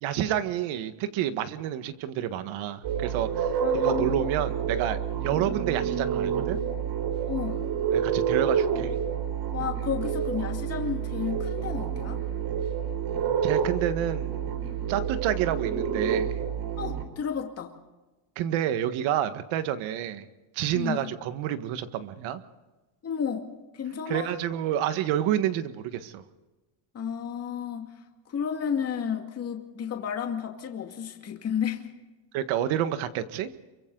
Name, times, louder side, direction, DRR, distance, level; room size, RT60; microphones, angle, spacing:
voice 1, 0.0-6.6 7.9-8.9 13.4-14.4 14.9-16.4 18.4-20.3 20.5-22.4 24.1-26.2 32.3-33.5, right 11 dB, 75° right, 10 dB, 1.7 m, -29 dB
sound 1, 2.8-17.0, right 7 dB, 55° right, 4.6 m, -29 dB
voice 2, 3.6-4.4 7.3-7.6 9.5-12.2 16.8-17.7 20.7-21.1 23.0-24.3 26.9-27.9 28.3-31.8, left 7 dB, 30° left, 3 dB, 2.2 m, -32 dB
28.0 x 24.0 x 4.0 m, 1.2 s
cardioid pair, 155°, 47 cm